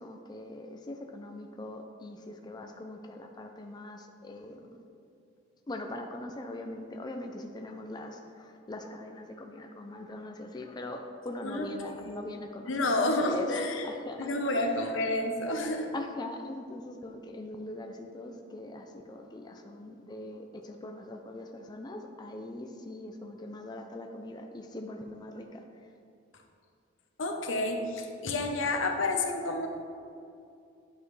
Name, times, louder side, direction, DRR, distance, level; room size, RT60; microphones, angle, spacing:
voice 1, 0.0-4.7 5.7-14.3 14.5-14.9 15.9-25.9, left 1 dB, 20° left, 3 dB, 0.4 m, -42 dB
voice 2, 12.7-13.8 14.2-15.9 27.2-29.7, left 2 dB, 80° left, 3 dB, 0.9 m, -29 dB
9.8 x 5.5 x 3.2 m, 2.5 s
head